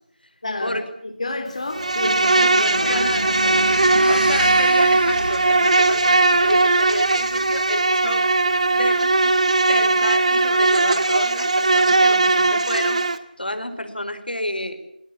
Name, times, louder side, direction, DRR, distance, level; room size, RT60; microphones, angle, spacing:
voice 1, 0.4-3.1 3.4-3.6, left 2 dB, 45° left, 3.3 m, -29 dB
sound 1, 1.3-9.6, right 1 dB, 75° right, 6.5 m, -34 dB
Insect, 1.7-13.2, right 2 dB, 45° right, 2.0 m, -18 dB
voice 2, 2.8-3.4 4.0-8.3 8.7-9.0 9.7-14.8, left 1 dB, 85° left, 4.9 m, -30 dB
28.5 x 18.0 x 8.7 m
figure-of-eight pair, 170°, 5 cm